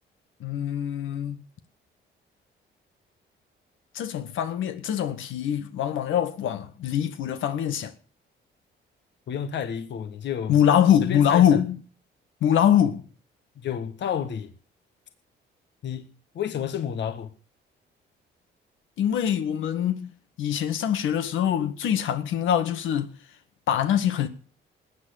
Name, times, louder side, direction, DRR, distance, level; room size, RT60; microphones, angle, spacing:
voice 1, 0.4-1.4 3.9-7.9 10.5-11.8 12.4-13.0 19.0-20.1 20.4-23.1 23.7-24.3, left 9 dB, 85° left, 1.8 m, -23 dB
voice 2, 9.3-10.5 11.0-11.6 13.6-14.5 15.8-16.0 16.3-17.3, left 8 dB, 65° left, 1.6 m, -30 dB
19.5 x 8.4 x 6.6 m
cardioid pair, 90°, 20 cm